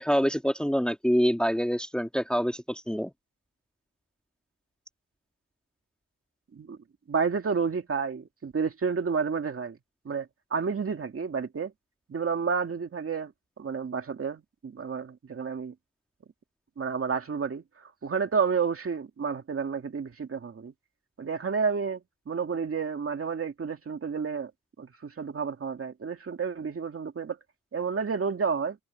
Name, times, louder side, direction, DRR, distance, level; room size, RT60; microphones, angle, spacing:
voice 1, 0.0-3.1, equal, 5° left, 1.7 m, -26 dB
voice 2, 7.1-9.8 10.0-11.7 12.1-13.3 13.6-15.7 16.8-20.7 21.2-22.0 22.3-24.5 24.8-27.4 27.7-28.8, right 5 dB, 45° right, 2.3 m, -30 dB
wide cardioid pair, 135°, 32 cm